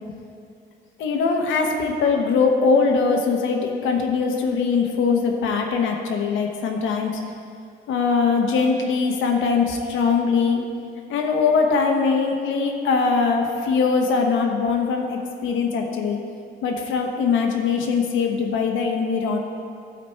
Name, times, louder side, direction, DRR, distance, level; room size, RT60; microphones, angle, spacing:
voice 1, 1.0-7.2 7.9-10.6 11.1-16.2 16.6-19.4, left 5 dB, 80° left, 2 dB, 0.9 m, -21 dB
11.5 x 4.3 x 4.3 m, 2.5 s
cardioid pair, 90°, 20 cm